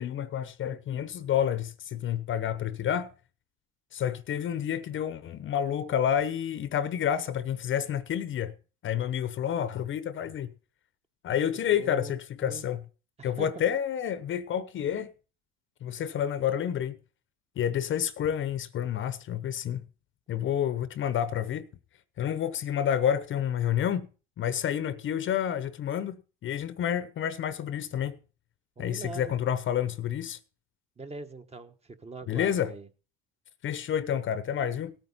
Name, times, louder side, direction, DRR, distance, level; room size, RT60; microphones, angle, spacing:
voice 1, 0.0-3.1 3.9-8.5 8.8-10.5 11.2-12.8 13.2-15.1 15.8-17.0 17.6-19.8 20.3-21.7 22.2-24.1 24.4-28.2 28.8-30.4 32.3-32.7 33.6-35.0, left 9 dB, 40° left, 0.9 m, -29 dB
voice 2, 11.3-12.1 12.4-12.6 13.2-13.6 28.8-29.3 31.0-32.9, right 3 dB, 20° right, 1.3 m, -42 dB
17.5 x 9.1 x 4.1 m
supercardioid pair, 90°, 30 cm